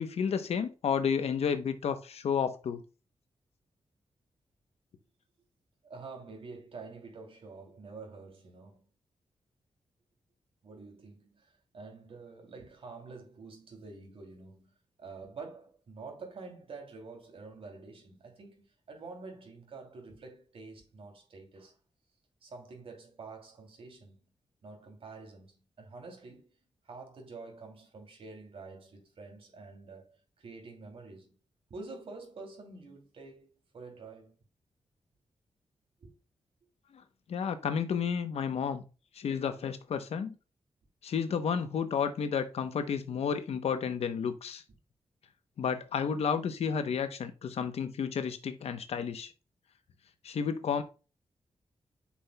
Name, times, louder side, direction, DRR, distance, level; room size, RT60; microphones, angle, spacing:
voice 1, 0.0-2.8 37.3-38.8 39.1-40.3 41.0-44.6 45.6-49.3 50.2-50.8, left 7 dB, 75° left, 0.8 m, -31 dB
voice 2, 5.8-8.8 10.6-21.8 22.4-24.3 24.6-26.5 26.8-31.4 31.7-34.4 36.0-36.1, right 4 dB, 60° right, 2.8 m, -48 dB
8.4 x 5.7 x 2.2 m
wide cardioid pair, 120°, 11 cm